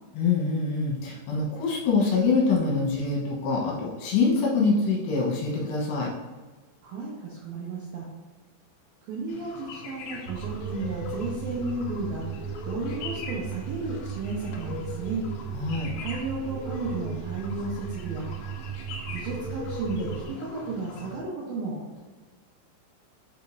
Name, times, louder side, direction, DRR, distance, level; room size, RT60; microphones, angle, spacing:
voice 1, 0.1-6.1 15.5-15.9, left 4 dB, 70° left, -3 dB, 3.1 m, -25 dB
voice 2, 6.8-8.1 9.1-15.2 16.0-18.3 19.1-22.0, right 3 dB, 75° right, -5 dB, 2.2 m, -33 dB
sound 1, 9.3-21.2, left 4 dB, 90° left, 2.1 m, -41 dB
sound 2, 10.3-20.3, right 9 dB, 55° right, 2.5 m, -36 dB
8.1 x 5.2 x 2.6 m, 1.3 s
omnidirectional pair, 5.6 m